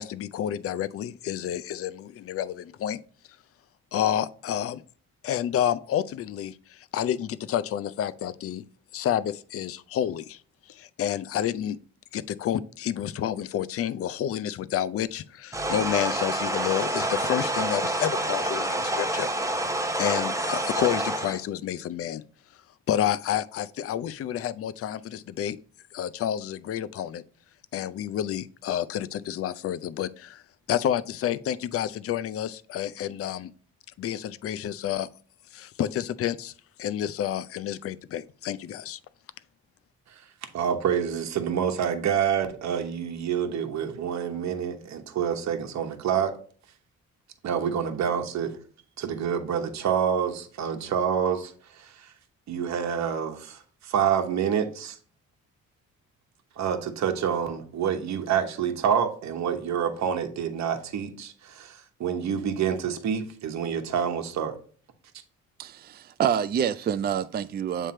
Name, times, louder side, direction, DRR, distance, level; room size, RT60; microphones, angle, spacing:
voice 1, 0.0-3.0 3.9-4.8 5.2-8.6 8.9-10.4 10.7-11.8 12.1-19.3 20.0-22.2 22.9-25.6 25.9-27.2 27.7-30.4 30.7-33.5 34.0-35.1 35.5-36.5 36.8-39.0, left 10 dB, 50° left, 0.5 m, -29 dB
sound 1, 15.5-21.4, right 1 dB, 10° right, 0.8 m, -28 dB
voice 2, 40.5-46.3 47.4-48.5 49.0-52.1 52.5-55.0 56.6-64.6, right 8 dB, 65° right, 1.1 m, -27 dB
voice 3, 65.6-67.9, right 8 dB, 35° right, 0.4 m, -27 dB
7.5 x 3.3 x 4.3 m
cardioid pair, 90°, 30 cm